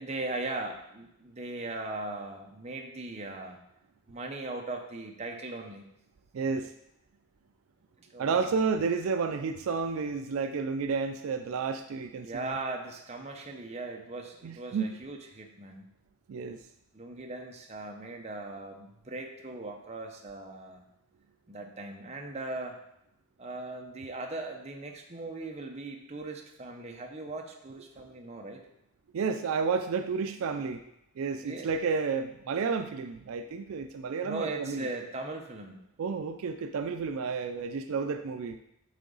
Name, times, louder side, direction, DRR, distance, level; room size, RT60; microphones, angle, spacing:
voice 1, 0.0-3.6 4.1-5.9 6.3-6.5 8.1-8.5 12.2-15.9 16.9-20.8 21.5-22.8 23.4-28.6 31.4-31.7 34.2-35.8, right 2 dB, 30° right, 2 dB, 0.7 m, -39 dB
voice 2, 6.3-6.7 8.2-12.6 14.4-15.0 16.3-16.6 29.1-30.8 31.2-34.9 36.0-38.6, right 5 dB, 70° right, 7 dB, 0.4 m, -31 dB
8.3 x 3.8 x 3.9 m, 0.80 s
head